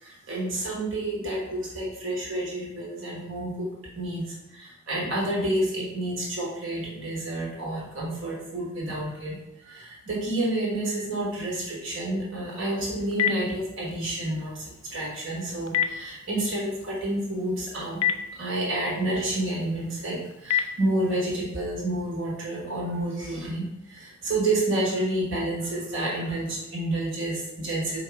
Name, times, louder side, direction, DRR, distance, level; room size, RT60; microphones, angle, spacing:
voice 1, 0.0-3.7 4.0-9.4 9.6-14.6 14.9-18.0 18.4-28.0, right 1 dB, 65° right, -5 dB, 1.3 m, -29 dB
Telephone, 12.5-21.3, left 9 dB, 90° left, 0.4 m, -33 dB
3.8 x 2.8 x 4.6 m, 0.88 s
head